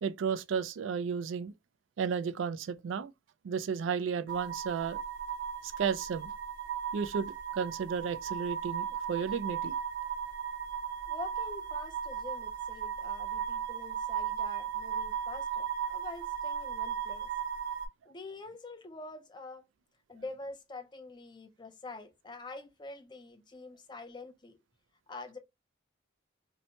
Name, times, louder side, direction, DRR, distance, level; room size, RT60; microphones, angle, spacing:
voice 1, 0.0-1.5 2.0-3.1 3.4-5.0 5.6-6.3 6.9-9.7, right 6 dB, 90° right, 0.3 m, -33 dB
sound 1, 4.3-17.9, right 8 dB, 70° right, 1.1 m, -36 dB
voice 2, 11.1-17.3 18.1-19.6 20.1-24.5 25.1-25.4, left 3 dB, 25° left, 0.5 m, -46 dB
2.7 x 2.1 x 2.7 m
head